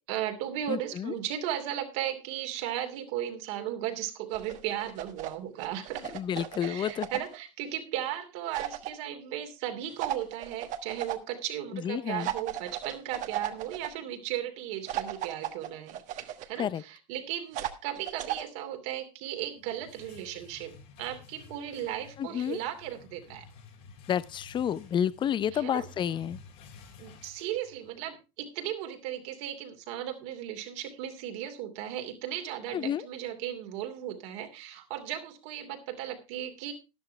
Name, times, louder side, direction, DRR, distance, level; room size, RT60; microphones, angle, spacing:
voice 1, 0.1-6.2 6.6-23.4 25.5-25.9 27.0-36.7, right 11 dB, 65° right, 2.8 m, -36 dB
voice 2, 0.7-1.1 6.1-7.1 11.8-12.3 16.6-16.8 22.2-22.6 24.1-26.4 32.7-33.0, left 9 dB, 30° left, 0.6 m, -30 dB
sound 1, 4.3-5.3 5.6-7.4 8.5-8.9 10.0-11.2 12.2-13.9 14.9-16.5 17.5-18.4, right 12 dB, 50° right, 1.3 m, -35 dB
sound 2, 19.4-28.1, left 5 dB, 65° left, 3.4 m, -53 dB
12.5 x 10.5 x 3.4 m
supercardioid pair, 110°, 17 cm